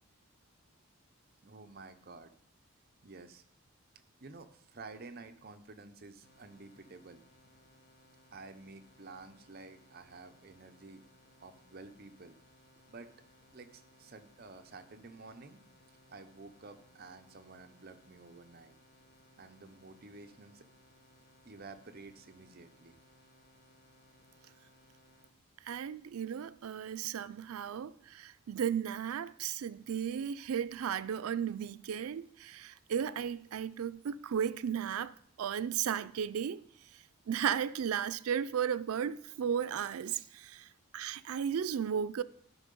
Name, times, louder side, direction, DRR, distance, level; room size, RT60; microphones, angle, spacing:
voice 1, 1.4-2.3 3.0-3.4 4.2-7.2 8.3-11.0 11.4-12.4 12.9-13.1 13.5-15.6 16.1-18.8 19.4-20.6 21.4-23.0, right 3 dB, 45° right, 0.7 m, -51 dB
sound 1, 6.2-25.3, left 1 dB, 45° left, 1.3 m, -64 dB
voice 2, 25.6-35.1 35.4-36.6 37.3-40.7 40.9-42.2, right 8 dB, 90° right, 0.4 m, -35 dB
12.0 x 5.6 x 5.3 m
head